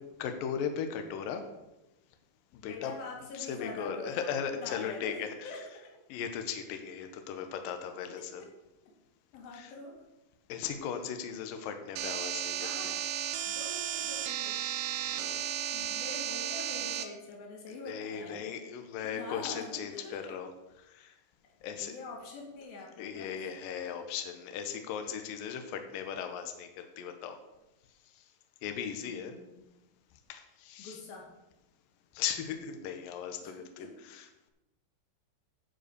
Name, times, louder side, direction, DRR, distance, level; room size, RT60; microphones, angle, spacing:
voice 1, 0.2-1.4 2.5-3.0 3.3-5.7 6.1-8.4 9.5-9.7 10.5-12.9 15.1-15.5 17.7-20.5 20.8-21.1 21.6-21.9 23.0-27.4 28.2-28.3 28.6-29.3 30.3-31.0 32.1-34.5, left 8 dB, 85° left, 6 dB, 2.0 m, -38 dB
voice 2, 2.6-5.2 5.4-5.6 9.3-10.0 12.6-13.0 13.5-14.6 15.7-18.4 19.0-20.4 21.6-23.3 29.0-29.7 30.8-31.3 33.4-34.2, left 3 dB, 55° left, -1 dB, 3.6 m, -45 dB
sound 1, 12.0-17.0, right 10 dB, 85° right, 2.9 m, -34 dB
12.0 x 5.2 x 6.7 m, 0.97 s
omnidirectional pair, 5.3 m